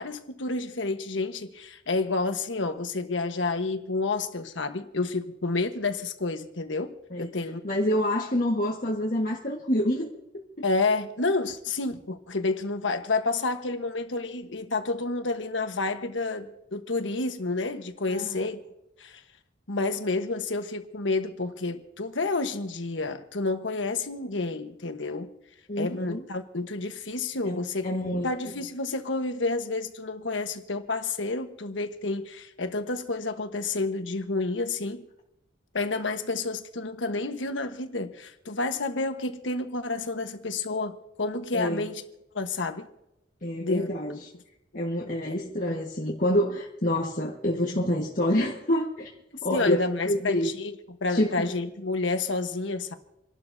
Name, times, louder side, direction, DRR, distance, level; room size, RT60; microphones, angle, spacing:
voice 1, 0.0-7.6 10.6-18.6 19.0-19.2 19.7-25.3 25.8-27.9 28.2-35.0 35.7-42.0 42.3-42.9 43.6-43.9 45.3-45.4 49.5-50.7 51.0-53.0, left 3 dB, 80° left, 1.3 m, -30 dB
voice 2, 7.6-10.1 18.1-18.4 25.7-26.2 27.4-28.3 41.5-41.9 43.4-44.2 44.7-49.1 49.4-50.5 51.1-51.5, left 1 dB, 45° left, 1.6 m, -27 dB
28.5 x 12.0 x 2.8 m
head